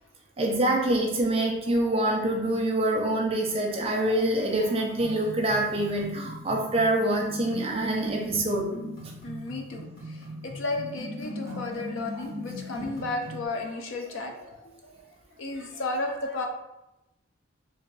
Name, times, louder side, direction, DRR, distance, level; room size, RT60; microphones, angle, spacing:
voice 1, 0.4-8.7, right 1 dB, 30° right, -1 dB, 0.5 m, -25 dB
sound 1, 5.0-13.5, left 1 dB, 50° left, 1.2 m, -39 dB
voice 2, 9.2-15.0 15.4-16.5, left 2 dB, 85° left, 2 dB, 0.5 m, -34 dB
2.5 x 2.4 x 3.2 m, 0.92 s
head